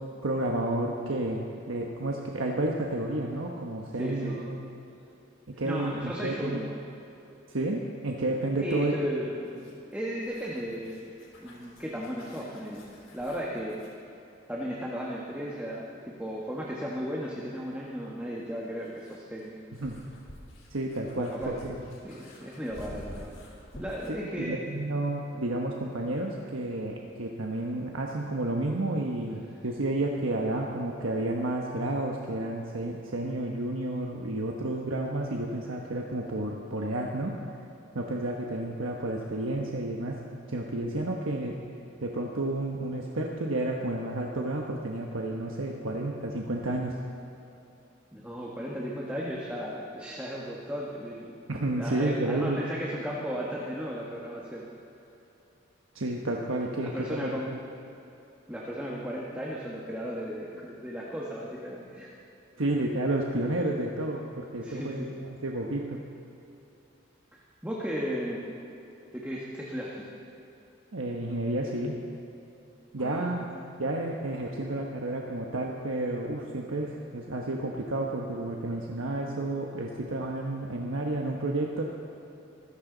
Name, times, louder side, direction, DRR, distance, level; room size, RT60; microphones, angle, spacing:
voice 1, 0.2-4.6 5.5-6.6 7.5-9.0 19.7-20.0 20.7-21.8 24.1-37.5 37.9-40.2 40.5-41.5 42.0-47.0 51.5-52.6 55.9-57.6 62.6-65.1 65.4-66.0 70.9-72.0 72.9-73.5 73.8-81.8, right 2 dB, 85° right, 0 dB, 1.2 m, -31 dB
voice 2, 4.0-4.4 5.6-6.8 8.6-11.0 11.4-13.8 14.5-19.6 21.2-21.6 22.0-23.3 23.7-24.7 48.1-51.4 51.7-54.7 56.8-57.6 58.5-62.1 64.6-65.1 67.3-68.5 69.1-70.1 73.0-73.6, equal, 5° right, -5 dB, 1.4 m, -35 dB
sound 1, 9.4-14.0 16.3-16.4 18.4-24.2, equal, 90° left, 3.9 m, -49 dB
25.5 x 14.5 x 4.0 m, 2.9 s
head